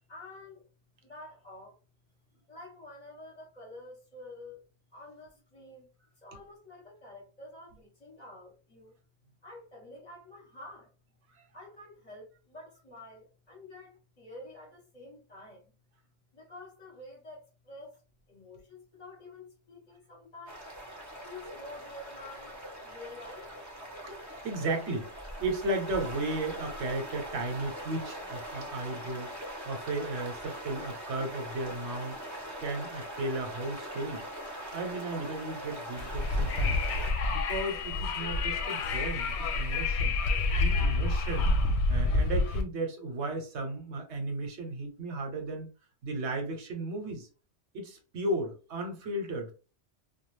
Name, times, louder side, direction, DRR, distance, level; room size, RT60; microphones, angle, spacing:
voice 1, 0.1-0.6 1.0-1.8 2.5-4.6 4.9-5.9 6.2-8.9 9.4-10.9 11.5-15.7 16.3-18.0 18.3-20.7 21.2-22.6 22.8-23.5, left 2 dB, 35° left, 0.9 m, -48 dB
sound 1, 20.5-37.1, equal, 20° right, 0.6 m, -41 dB
voice 2, 24.4-25.1 25.4-29.3 29.6-34.3 34.7-36.8 37.3-40.2 40.6-41.5 41.9-45.7 46.0-47.3 47.7-49.5, right 2 dB, 70° right, 1.1 m, -35 dB
Wind, 36.0-42.6, left 2 dB, 70° left, 0.8 m, -28 dB
2.4 x 2.3 x 3.1 m
omnidirectional pair, 1.2 m